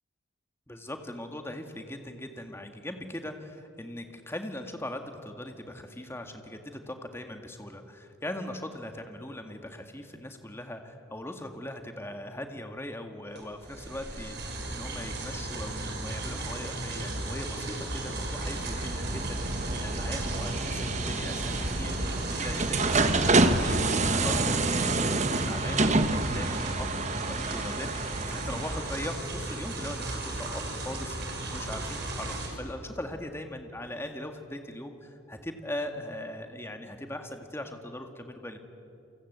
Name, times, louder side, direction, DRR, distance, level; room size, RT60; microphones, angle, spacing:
voice 1, 0.7-26.9 27.3-38.6, left 1 dB, 10° left, 5 dB, 1.9 m, -40 dB
sound 1, 13.3-32.5, right 2 dB, 55° right, 6.0 m, -35 dB
sound 2, 18.3-29.0, right 2 dB, 35° right, 1.2 m, -28 dB
29.0 x 24.5 x 8.2 m, 2.7 s
head